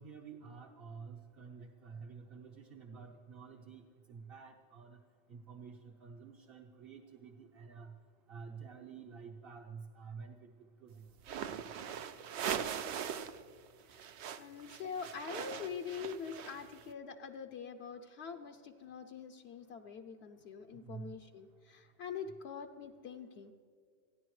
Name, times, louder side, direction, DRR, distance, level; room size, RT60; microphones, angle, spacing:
voice 1, 0.0-3.8 4.1-5.0 5.3-7.9 8.3-10.5 10.8-10.9 11.3-11.5 20.8-21.1, right 5 dB, 60° right, -1 dB, 1.1 m, -50 dB
sound 1, 11.2-13.4 13.7-16.8, right 8 dB, 80° right, 0.9 m, -41 dB
voice 2, 14.4-23.5, left 6 dB, 70° left, 6 dB, 0.9 m, -44 dB
28.5 x 10.0 x 3.2 m, 2.2 s
omnidirectional pair, 1.1 m